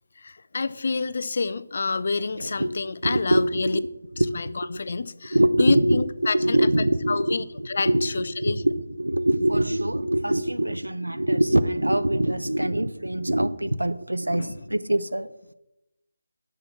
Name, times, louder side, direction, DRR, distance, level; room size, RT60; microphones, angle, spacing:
voice 1, 0.2-3.8 4.3-6.6 7.1-8.6 14.3-14.6, left 4 dB, 50° left, 0.5 m, -28 dB
voice 2, 2.3-2.8 3.0-3.9 4.2-4.8 5.3-15.3, right 1 dB, 90° right, 0.6 m, -24 dB
7.2 x 5.9 x 7.1 m
figure-of-eight pair, 155°, 0 cm